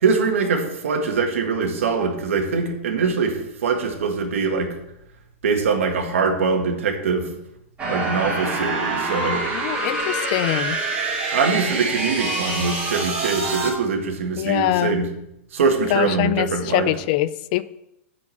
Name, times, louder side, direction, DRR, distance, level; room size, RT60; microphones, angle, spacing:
voice 1, 0.0-3.4 3.6-4.7 5.4-7.3 7.9-9.4 11.3-15.1 15.5-16.9, right 4 dB, 80° right, 3 dB, 1.9 m, -22 dB
sound 1, 7.8-13.7, right 2 dB, 15° right, 2.9 m, -26 dB
voice 2, 9.5-10.8 14.4-15.0 15.9-17.6, left 15 dB, 40° left, 17 dB, 0.4 m, -23 dB
8.3 x 5.0 x 7.1 m, 0.83 s
hypercardioid pair, 155°, 7 cm